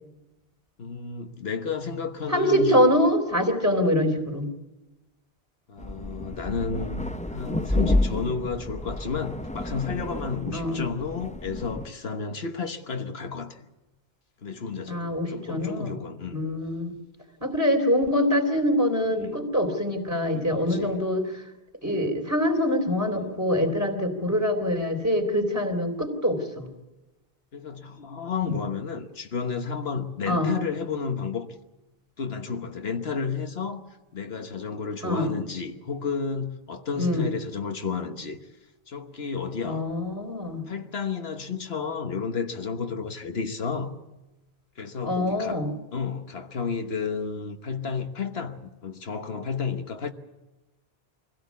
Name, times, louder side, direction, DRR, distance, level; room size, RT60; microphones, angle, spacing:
voice 1, 0.8-2.8 5.7-13.7 14.4-16.4 19.2-19.5 20.3-21.0 23.2-23.4 27.5-31.5 32.2-33.8 34.1-38.4 38.9-39.9 40.6-43.9 44.8-45.6 45.9-50.1, left 5 dB, 75° left, 1.5 m, -32 dB
voice 2, 2.3-4.5 10.5-10.8 14.9-16.0 16.3-17.0 17.4-21.4 21.8-26.7 28.4-28.5 30.3-30.5 35.0-35.3 37.0-37.2 39.6-40.6 45.0-45.7, equal, 15° right, 3.6 m, -24 dB
sound 1, 5.8-11.9, left 1 dB, 10° left, 0.7 m, -30 dB
24.5 x 16.5 x 8.4 m
omnidirectional pair, 1.1 m